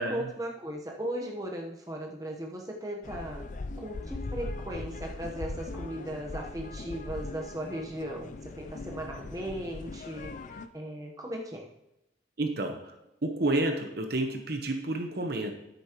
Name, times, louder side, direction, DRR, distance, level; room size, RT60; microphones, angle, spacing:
voice 1, 0.0-3.5 3.8-10.3 10.7-11.7, right 1 dB, 20° right, 0 dB, 1.0 m, -37 dB
sound 1, 3.0-10.7, left 3 dB, 40° left, 0.4 m, -40 dB
voice 2, 12.4-12.8 13.2-15.5, right 2 dB, 55° right, 4 dB, 1.0 m, -29 dB
10.0 x 8.7 x 3.0 m, 0.89 s
head